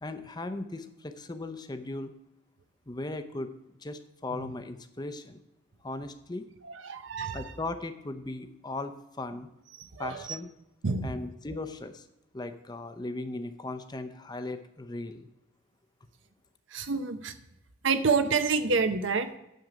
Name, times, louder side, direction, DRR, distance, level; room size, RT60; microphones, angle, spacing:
voice 1, 0.0-2.1 2.9-3.5 3.8-5.4 5.8-6.5 7.3-9.5 10.0-10.5 11.0-12.1 12.3-15.3, left 2 dB, 20° left, 8 dB, 0.6 m, -37 dB
voice 2, 6.8-7.4 9.8-10.4 10.8-11.1 16.7-17.3 17.8-19.3, right 4 dB, 65° right, 9 dB, 0.7 m, -28 dB
9.2 x 7.2 x 5.0 m, 0.89 s
head